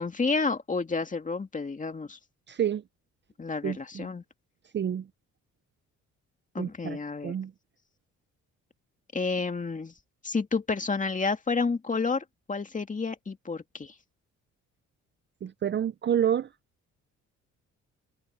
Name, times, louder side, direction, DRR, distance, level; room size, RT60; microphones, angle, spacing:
voice 1, 0.0-2.2 3.4-4.2 6.5-7.3 9.1-9.9 10.2-13.9, left 4 dB, 25° left, 2.2 m, -30 dB
voice 2, 2.5-2.8 3.6-4.1 4.7-5.1 6.6-7.0 7.2-7.5 15.4-16.5, right 9 dB, 40° right, 0.5 m, -28 dB
cardioid pair, 90°, 30 cm